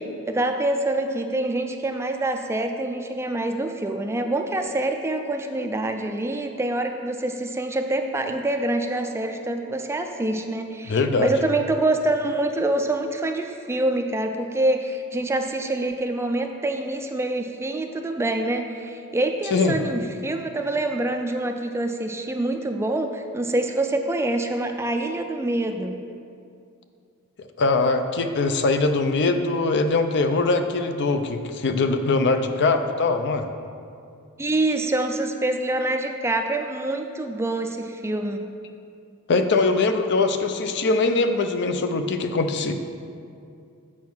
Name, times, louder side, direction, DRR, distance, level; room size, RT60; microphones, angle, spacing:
voice 1, 0.0-26.0 34.4-38.4, right 2 dB, 10° right, 5 dB, 0.3 m, -26 dB
voice 2, 10.9-11.3 19.5-19.8 27.6-33.5 39.3-42.8, left 3 dB, 55° left, 7 dB, 0.5 m, -22 dB
7.5 x 4.7 x 6.0 m, 2.4 s
head